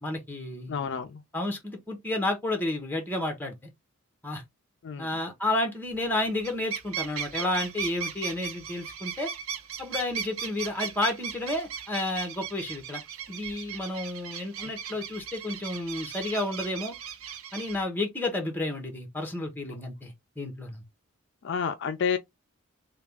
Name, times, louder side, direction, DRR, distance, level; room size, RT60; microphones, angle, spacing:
voice 1, 0.0-0.7 1.3-3.5 4.2-4.4 5.0-9.3 9.8-13.0 13.3-16.9 17.5-20.8, left 2 dB, 10° left, 1.0 m, -31 dB
voice 2, 0.7-1.2 4.8-5.2 14.6-14.7 19.7-19.8 21.4-22.2, left 6 dB, 60° left, 0.4 m, -30 dB
sound 1, 5.9-6.1 6.4-17.8, right 7 dB, 90° right, 0.6 m, -37 dB
3.4 x 2.3 x 3.4 m
head